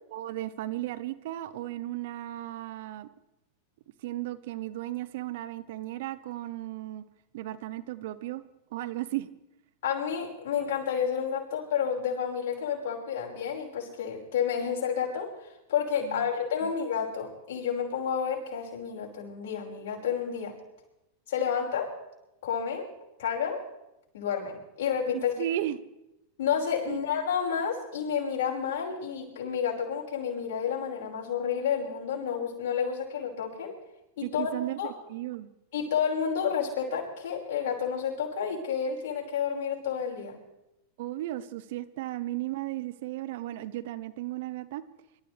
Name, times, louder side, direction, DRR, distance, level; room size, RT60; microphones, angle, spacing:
voice 1, 0.1-3.1 4.0-7.0 7.3-8.4 8.7-9.3 16.0-16.3 16.6-16.7 25.1-25.8 26.9-27.0 34.2-35.5 41.0-44.8, right 14 dB, 65° right, 15 dB, 0.9 m, -35 dB
voice 2, 9.8-20.6 21.3-21.9 22.4-22.9 23.2-23.6 24.1-25.3 26.4-33.7 34.2-34.9 35.7-40.4, left 7 dB, 65° left, -3 dB, 5.5 m, -30 dB
26.0 x 13.5 x 3.4 m, 0.91 s
hypercardioid pair, 105°, 0 cm